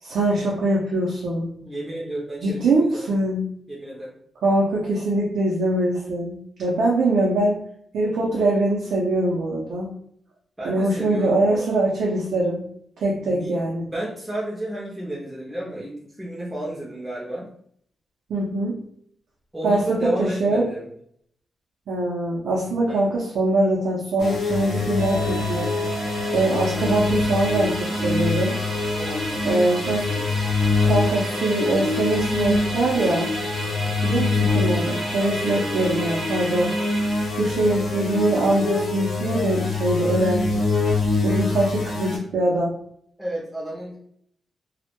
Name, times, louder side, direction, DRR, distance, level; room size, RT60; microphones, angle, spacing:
voice 1, 0.0-1.5 2.4-3.4 4.4-7.6 7.9-9.9 10.6-12.6 13.0-13.8 18.3-18.8 19.6-20.6 21.9-25.7 26.3-28.6 29.4-30.1 30.8-33.3 34.0-36.8 37.4-40.5 41.2-42.8, right 2 dB, 90° right, -4 dB, 0.5 m, -23 dB
voice 2, 1.6-3.1 3.7-4.1 10.6-11.7 13.2-17.5 19.5-20.9 22.9-23.0 29.0-30.4 33.6-34.0 35.4-35.9 43.2-44.0, right 1 dB, 10° right, -5 dB, 0.4 m, -32 dB
sound 1, 24.2-42.2, left 3 dB, 75° left, 0.7 m, -25 dB
Musical instrument, 25.0-40.5, right 2 dB, 55° right, 0.8 m, -34 dB
2.1 x 2.0 x 2.8 m, 0.67 s
wide cardioid pair, 170°, 0 cm